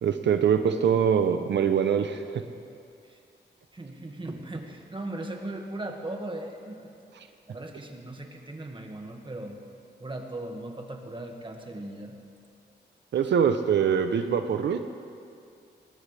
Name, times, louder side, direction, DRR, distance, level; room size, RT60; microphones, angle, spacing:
voice 1, 0.0-2.4 7.1-7.3 13.1-14.8, right 7 dB, 80° right, 8 dB, 0.7 m, -24 dB
voice 2, 3.7-6.9 7.5-9.6 10.0-12.1, right 1 dB, 30° right, 2 dB, 1.9 m, -38 dB
21.0 x 18.5 x 3.4 m, 2.4 s
cardioid pair, 80°, 18 cm